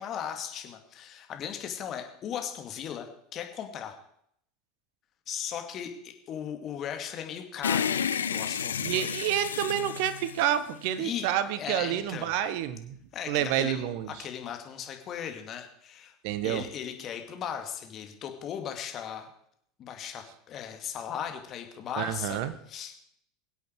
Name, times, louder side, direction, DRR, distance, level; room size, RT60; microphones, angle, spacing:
voice 1, 0.0-4.0 5.3-8.0 8.3-9.1 11.0-11.3 11.6-12.3 13.1-13.8 14.1-16.1 16.4-19.3 19.8-22.4 22.7-22.9, left 9 dB, 45° left, 5 dB, 2.3 m, -37 dB
sound 1, 7.6-11.1, left 7 dB, 85° left, 0.6 m, -31 dB
voice 2, 8.8-13.0 13.3-14.1 16.2-16.6 22.0-22.6, right 11 dB, 60° right, 14 dB, 1.2 m, -29 dB
22.5 x 8.3 x 4.7 m, 0.69 s
hypercardioid pair, 80°, 0 cm